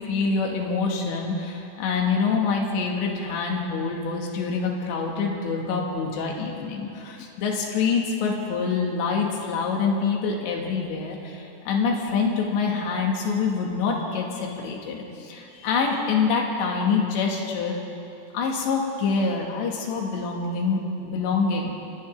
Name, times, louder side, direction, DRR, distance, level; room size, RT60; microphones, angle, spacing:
voice 1, 0.0-17.8 18.3-21.7, left 5 dB, 80° left, -1 dB, 4.4 m, -26 dB
29.5 x 26.0 x 3.8 m, 2.7 s
omnidirectional pair, 5.1 m